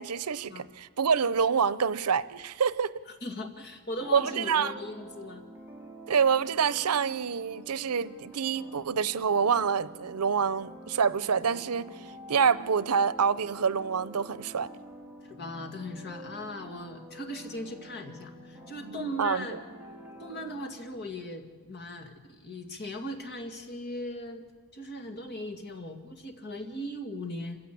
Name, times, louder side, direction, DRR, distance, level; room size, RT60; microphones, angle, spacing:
voice 1, 0.0-3.0 4.1-4.7 6.1-14.7 18.8-19.5, right 6 dB, 90° right, 17 dB, 0.7 m, -27 dB
voice 2, 3.1-5.4 15.2-19.6 20.2-24.4 24.7-27.6, left 1 dB, 50° left, 5 dB, 2.3 m, -39 dB
sound 1, 4.0-21.2, right 1 dB, 10° right, 2.2 m, -48 dB
26.5 x 16.0 x 8.5 m, 1.5 s
head